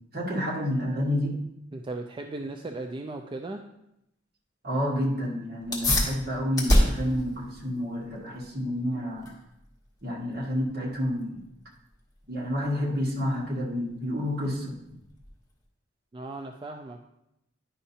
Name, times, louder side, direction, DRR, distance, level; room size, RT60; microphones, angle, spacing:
voice 1, 0.1-1.4 4.6-9.3 10.0-11.4 12.3-14.8, equal, 55° right, -3 dB, 1.6 m, -29 dB
voice 2, 1.7-3.6 16.1-17.0, right 2 dB, 25° right, 4 dB, 0.3 m, -37 dB
sound 1, 5.6-15.6, left 1 dB, 20° left, 1.3 m, -30 dB
10.0 x 5.5 x 2.8 m, 0.83 s
head